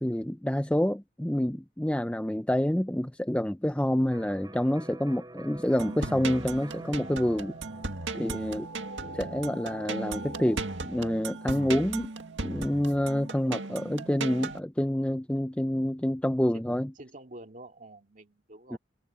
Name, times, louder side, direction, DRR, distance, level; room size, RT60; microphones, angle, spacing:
voice 1, 0.0-7.5 8.1-8.7 9.0-12.1 12.4-16.9 18.7-18.8, equal, 5° left, 0.6 m, -28 dB
Electric guitar, 4.1-11.8, right 1 dB, 20° right, 5.6 m, -50 dB
sound 1, 5.8-14.6, right 3 dB, 85° right, 2.0 m, -37 dB
voice 2, 17.0-18.8, right 1 dB, 45° right, 2.4 m, -49 dB
head